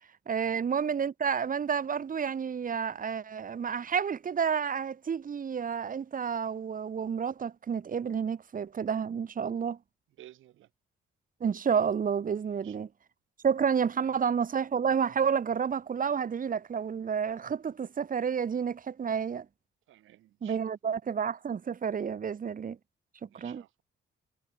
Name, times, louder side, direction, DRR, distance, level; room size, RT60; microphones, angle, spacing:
voice 1, 0.3-9.8 11.4-12.9 13.4-19.5 20.4-22.8 23.2-23.6, right 7 dB, 45° right, 1.9 m, -30 dB
voice 2, 10.2-10.7 12.6-12.8 14.0-14.1 19.9-20.9 23.3-23.8, right 14 dB, 80° right, 3.4 m, -55 dB
cardioid pair, 90°, 20 cm